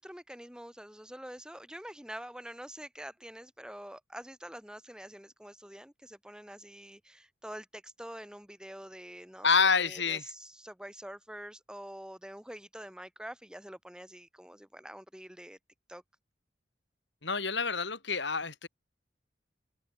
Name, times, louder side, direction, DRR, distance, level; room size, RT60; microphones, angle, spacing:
voice 1, 0.0-15.6 15.9-16.0, equal, 5° right, 6.0 m, -46 dB
voice 2, 9.4-10.2 17.2-18.7, left 5 dB, 70° left, 5.1 m, -27 dB
open air
head